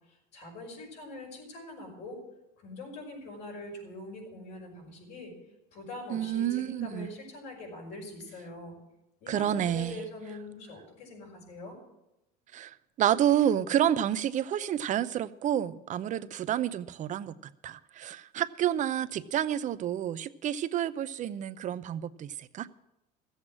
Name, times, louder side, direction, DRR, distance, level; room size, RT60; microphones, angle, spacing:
voice 1, 0.3-2.2 2.6-5.3 5.7-8.8 9.2-11.8, left 2 dB, 70° left, -2 dB, 5.8 m, -43 dB
voice 2, 6.1-7.1 9.3-10.0 12.5-22.7, right 10 dB, 45° right, 15 dB, 0.6 m, -29 dB
14.5 x 8.1 x 7.5 m, 0.90 s
cardioid pair, 120°, 19 cm